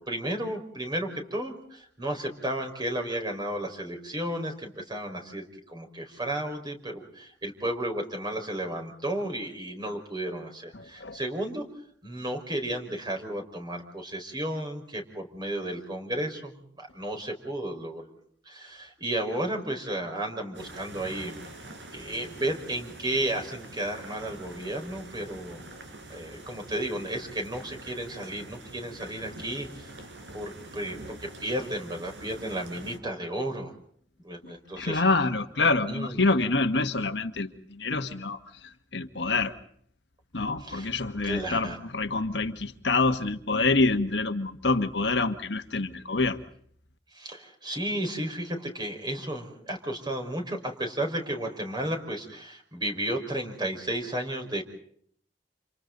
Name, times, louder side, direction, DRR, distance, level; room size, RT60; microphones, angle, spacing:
voice 1, 0.0-11.6 12.0-18.1 18.4-21.3 21.9-25.6 26.1-29.9 30.3-33.7 34.2-35.0 35.9-36.3 40.6-40.9 41.2-41.8 47.1-54.6, right 1 dB, 25° right, 2 dB, 4.9 m, -33 dB
voice 2, 10.7-11.2 34.8-38.4 38.9-39.5 40.3-46.4, left 3 dB, 70° left, 7 dB, 1.5 m, -26 dB
sound 1, 20.5-33.0, right 1 dB, 90° right, 5.0 m, -45 dB
30.0 x 29.0 x 4.0 m, 0.62 s
head